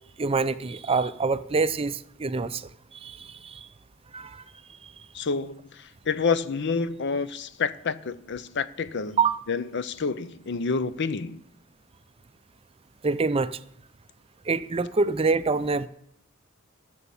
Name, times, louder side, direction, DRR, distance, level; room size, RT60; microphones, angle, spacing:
voice 1, 0.2-3.7 4.1-4.4 9.2-9.4 13.0-13.6 14.5-15.9, right 4 dB, 30° right, 0.5 m, -26 dB
voice 2, 5.1-5.6 6.1-9.2 9.5-11.4, left 5 dB, 60° left, 0.7 m, -28 dB
12.5 x 7.0 x 7.1 m
head